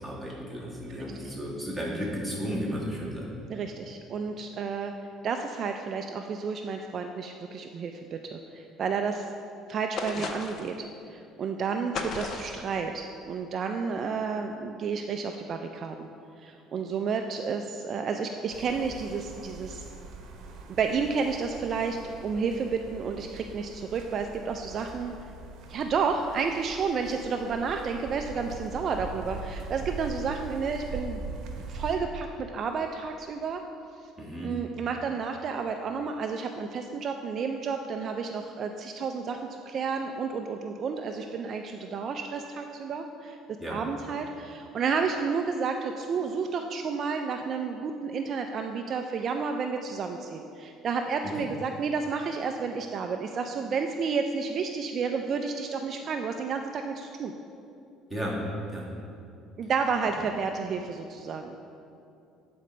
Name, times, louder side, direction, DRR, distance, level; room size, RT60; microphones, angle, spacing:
voice 1, 0.0-3.2 34.2-34.5 43.6-43.8 51.2-51.4 58.1-58.4 58.7-58.9, equal, 5° left, -5 dB, 1.5 m, -34 dB
voice 2, 3.5-4.9 5.2-9.2 9.7-16.1 16.4-19.8 20.7-25.1 25.7-31.2 31.5-33.6 34.4-39.4 39.7-43.4 43.7-57.3 59.6-61.5, right 5 dB, 40° right, 4 dB, 0.3 m, -31 dB
sound 1, 10.0-10.8 11.9-12.7, left 4 dB, 45° left, 0.5 m, -35 dB
sound 2, 18.5-32.0, right 3 dB, 60° right, 0.8 m, -42 dB
8.3 x 4.2 x 5.0 m, 2.6 s
cardioid pair, 150°, 0 cm